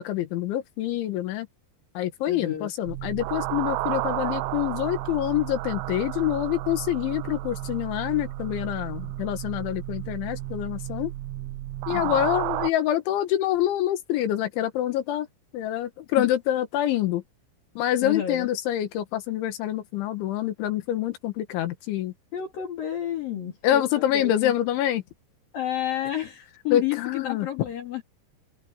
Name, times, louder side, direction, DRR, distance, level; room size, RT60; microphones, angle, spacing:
voice 1, 0.0-1.5 2.0-11.1 11.9-15.3 15.5-17.2 17.8-22.1 23.6-25.0 26.7-27.5, left 12 dB, 85° left, 4.0 m, -26 dB
voice 2, 2.3-2.7 11.9-12.3 16.2-16.3 18.0-18.5 22.3-24.5 25.5-28.0, left 11 dB, 55° left, 4.1 m, -31 dB
sound 1, 2.9-12.7, right 16 dB, 85° right, 2.9 m, -32 dB
omnidirectional pair, 5.3 m